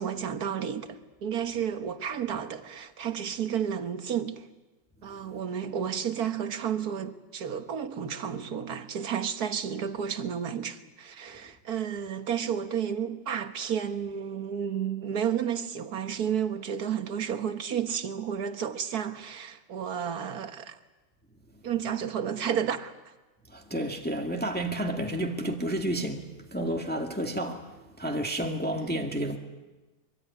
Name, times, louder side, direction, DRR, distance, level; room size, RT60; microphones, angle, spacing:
voice 1, 0.0-4.5 5.0-20.8 21.6-22.9 28.8-29.0, right 8 dB, 65° right, 1.8 m, -32 dB
voice 2, 23.5-27.7 28.0-29.4, right 1 dB, 5° left, 1.8 m, -31 dB
24.0 x 24.0 x 9.6 m
omnidirectional pair, 1.8 m